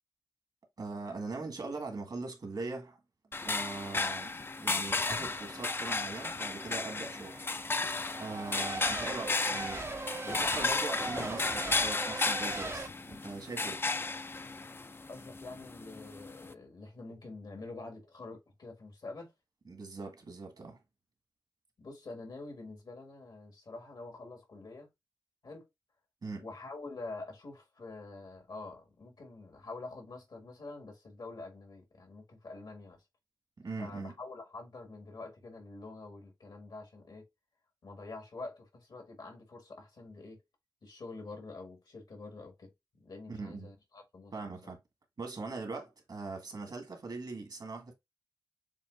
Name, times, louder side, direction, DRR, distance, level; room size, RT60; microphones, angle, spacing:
voice 1, 0.8-3.0 3.4-7.4 8.2-9.9 10.2-13.8 19.6-20.8 26.2-26.4 33.6-34.1 43.3-43.7 44.3-44.8 45.2-47.9, right 3 dB, 70° right, 1.6 m, -41 dB
sound 1, 3.3-16.5, left 3 dB, 30° left, 0.3 m, -34 dB
Race car auto racing / Accelerating revving vroom / Mechanisms, 5.0-12.9, right 3 dB, 35° right, 0.5 m, -41 dB
voice 2, 15.1-19.3 21.8-24.9 25.4-25.7 26.4-33.0 33.8-37.3 37.8-40.4 40.8-42.7 43.0-44.3, left 3 dB, 80° left, 1.8 m, -46 dB
7.2 x 2.4 x 2.4 m
cardioid pair, 60°, 7 cm